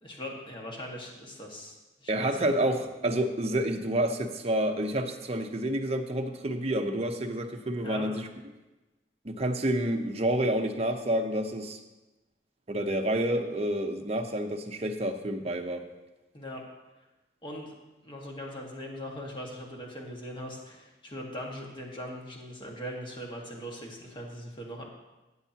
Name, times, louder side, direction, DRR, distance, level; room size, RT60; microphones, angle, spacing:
voice 1, 0.0-2.5 7.8-8.1 16.3-16.7 17.4-17.7 18.0-24.8, equal, 30° left, -1 dB, 1.7 m, -40 dB
voice 2, 2.1-8.2 9.2-11.8 12.7-15.9, right 1 dB, 35° right, 4 dB, 0.8 m, -29 dB
15.0 x 8.2 x 2.9 m, 1.1 s
head